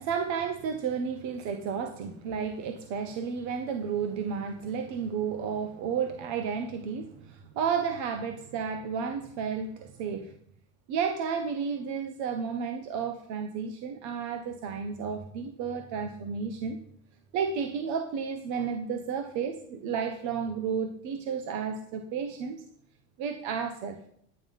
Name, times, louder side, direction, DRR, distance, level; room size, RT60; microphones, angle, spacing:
voice 1, 0.0-10.3 10.9-16.8 17.3-22.6 23.2-24.0, right 6 dB, 45° right, 7 dB, 1.2 m, -32 dB
11.0 x 9.6 x 5.5 m, 0.68 s
supercardioid pair, 150°, 42 cm